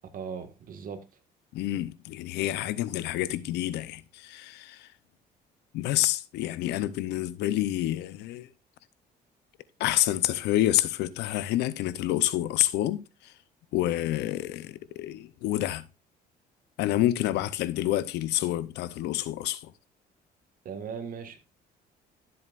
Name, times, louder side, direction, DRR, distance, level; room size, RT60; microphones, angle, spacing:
voice 1, 0.1-1.0 20.7-21.4, right 6 dB, 55° right, 1.7 m, -38 dB
voice 2, 1.5-4.9 5.7-8.5 9.8-13.3 13.7-15.8 16.8-19.7, left 14 dB, 85° left, 0.7 m, -28 dB
12.0 x 7.8 x 2.5 m
cardioid pair, 110°, 17 cm